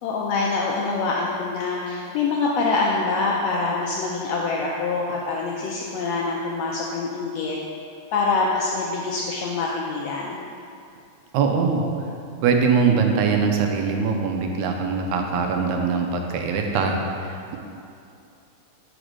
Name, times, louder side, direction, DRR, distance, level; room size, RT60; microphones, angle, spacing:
voice 1, 0.0-7.6 8.1-10.4, left 3 dB, 85° left, -2 dB, 1.5 m, -25 dB
voice 2, 11.3-11.8 12.4-17.6, right 5 dB, 80° right, 2 dB, 2.0 m, -22 dB
5.1 x 5.0 x 6.1 m, 2.5 s
omnidirectional pair, 3.5 m